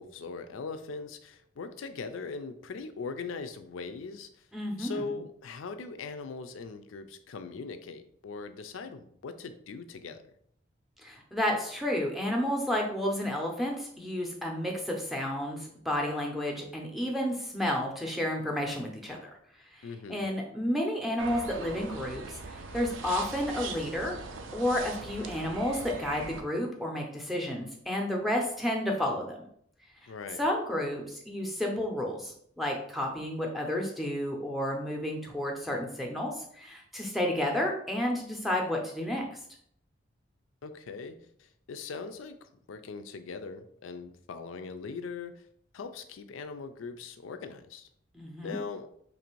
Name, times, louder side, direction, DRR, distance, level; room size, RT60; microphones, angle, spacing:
voice 1, 0.0-4.3 4.8-10.2 19.8-20.2 30.1-30.4 40.6-42.4 42.7-45.4 45.7-47.9 48.4-48.9, left 4 dB, 85° left, 9 dB, 0.4 m, -40 dB
voice 2, 4.5-5.1 11.0-19.3 19.7-22.2 22.5-24.1 24.5-29.4 30.4-39.2 48.1-48.6, left 1 dB, ahead, -1 dB, 0.6 m, -31 dB
sound 1, 21.2-26.4, right 4 dB, 80° right, 0.5 m, -41 dB
3.2 x 2.6 x 4.5 m, 0.68 s
head